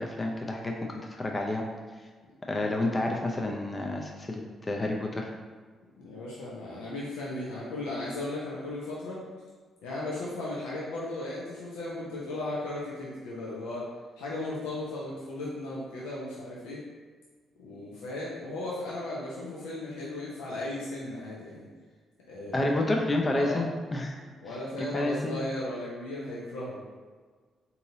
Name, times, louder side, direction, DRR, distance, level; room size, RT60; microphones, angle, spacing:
voice 1, 0.0-1.6 2.4-4.4 4.7-5.3 22.5-24.2 24.8-25.4, left 2 dB, 30° left, 1 dB, 0.5 m, -29 dB
voice 2, 6.0-9.2 9.8-13.9 14.2-16.8 17.6-21.7 22.3-22.8 23.3-23.6 24.4-26.8, left 2 dB, 80° left, -6 dB, 0.6 m, -36 dB
3.7 x 2.7 x 2.7 m, 1.5 s
hypercardioid pair, 45°, 0 cm